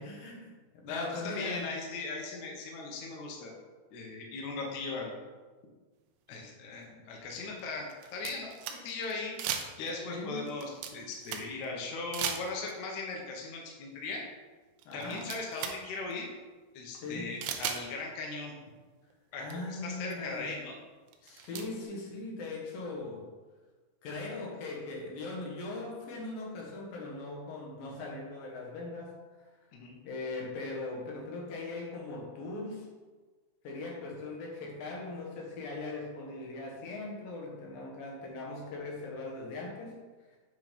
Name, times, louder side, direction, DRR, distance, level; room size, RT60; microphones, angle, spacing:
voice 1, 0.0-1.7 10.1-10.5 14.9-15.3 17.0-17.3 19.4-20.6 21.2-23.3 24.0-29.2 30.0-32.9 33.6-40.0, left 2 dB, 65° left, -1 dB, 2.6 m, -40 dB
voice 2, 0.8-3.5 3.9-5.1 6.3-8.6 8.8-9.4 9.8-14.2 14.9-16.3 16.7-18.5 19.3-20.8 29.7-30.0, left 3 dB, 85° left, -1 dB, 1.6 m, -38 dB
sound 1, 6.3-6.4 7.3-9.1 9.4-10.0 10.4-11.7 12.1-12.8 14.2-14.3 14.8-15.8 16.1-16.2 17.4-17.8 19.1-19.2 19.5-19.6 20.1-20.2 21.1-21.7, right 8 dB, 80° right, 2.5 m, -37 dB
8.9 x 3.9 x 5.1 m, 1.3 s
omnidirectional pair, 5.2 m